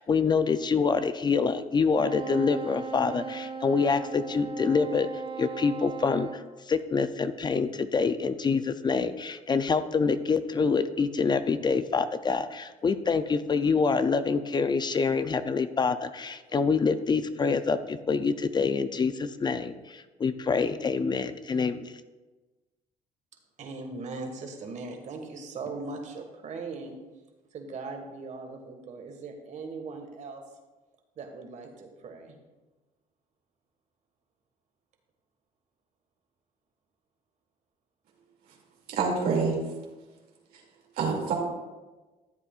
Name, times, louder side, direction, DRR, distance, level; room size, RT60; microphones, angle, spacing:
voice 1, 0.0-5.1 5.4-21.9, left 5 dB, 30° left, 11 dB, 0.4 m, -26 dB
Wind instrument woodwind instrument, 1.9-6.4, right 5 dB, 35° right, 0.7 m, -37 dB
voice 2, 23.6-27.0 27.5-30.4 31.2-32.4, right 3 dB, 55° right, 3 dB, 1.6 m, -39 dB
voice 3, 38.9-39.6 41.0-41.3, right 5 dB, 80° right, -1 dB, 2.4 m, -26 dB
13.5 x 8.1 x 2.4 m, 1.2 s
cardioid pair, 100°, 15 cm